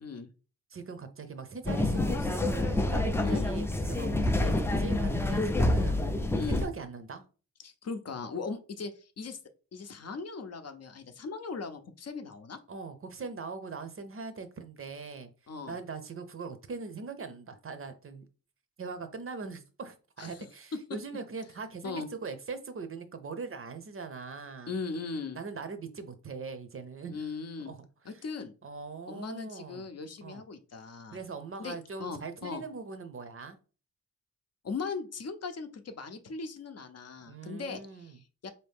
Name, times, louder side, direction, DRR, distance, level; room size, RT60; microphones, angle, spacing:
voice 1, 0.7-6.1 6.5-7.2 12.7-15.3 15.7-18.2 18.8-24.7 25.3-27.2 27.7-28.2 28.6-29.9 30.2-30.4 31.1-33.6 37.3-38.2, right 4 dB, 45° right, 0.6 m, -41 dB
sound 1, 1.6-6.7, left 2 dB, 10° left, 0.3 m, -27 dB
voice 2, 7.6-9.4 9.7-12.6 15.5-15.8 20.2-20.4 21.8-22.1 24.7-25.4 27.1-27.7 28.1-28.5 29.1-31.2 31.6-32.6 34.6-38.5, left 4 dB, 55° left, 0.6 m, -39 dB
4.1 x 2.7 x 3.4 m
wide cardioid pair, 130°, 31 cm